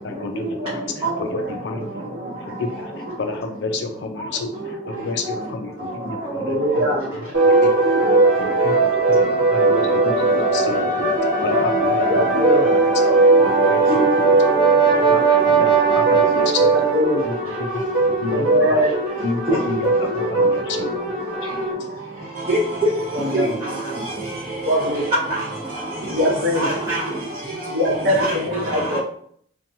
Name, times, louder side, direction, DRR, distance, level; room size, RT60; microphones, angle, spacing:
voice 1, 0.0-1.9 2.4-6.8 7.5-8.0 8.4-11.1 11.4-12.8 13.4-14.0 14.8-16.7 17.3-17.8 18.1-18.8 19.2-21.0 21.4-21.9, left 3 dB, 60° left, 0.4 m, -30 dB
voice 2, 6.4-6.9 12.1-12.7 16.6-17.3 18.3-18.9 23.1-23.5 24.6-25.0 26.1-26.7 27.7-29.0, left 1 dB, 55° right, 0.9 m, -22 dB
sound 1, 7.3-21.7, right 2 dB, 80° right, 1.1 m, -19 dB
Brass instrument, 13.1-17.4, right 7 dB, 25° left, 0.8 m, -19 dB
voice 3, 22.5-22.9 23.3-23.5 25.3-25.4 26.5-27.1 28.2-28.4 28.7-29.0, right 1 dB, 25° right, 0.6 m, -22 dB
2.8 x 2.2 x 2.6 m
head